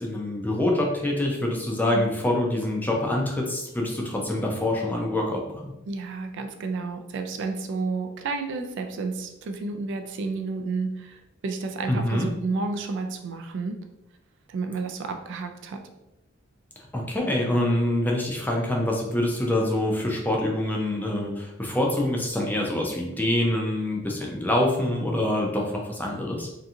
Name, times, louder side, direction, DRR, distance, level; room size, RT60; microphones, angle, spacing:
voice 1, 0.0-5.7 11.9-12.3 16.9-26.5, left 1 dB, 10° left, -1 dB, 0.4 m, -25 dB
voice 2, 5.9-13.8 14.5-15.8, right 3 dB, 60° right, 5 dB, 0.3 m, -31 dB
2.8 x 2.5 x 2.4 m, 0.90 s
head